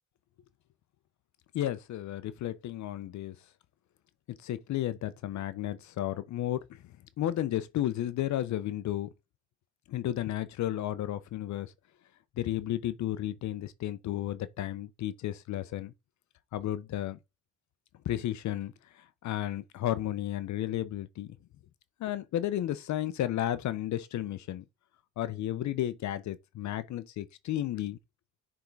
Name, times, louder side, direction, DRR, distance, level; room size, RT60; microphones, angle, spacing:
voice 1, 1.5-3.4 4.4-6.8 7.2-9.1 9.9-11.7 12.4-15.9 16.5-17.2 18.0-21.4 22.0-24.6 25.2-28.0, left 12 dB, 70° left, 0.7 m, -33 dB
6.6 x 3.7 x 4.7 m
cardioid pair, 90°, 30 cm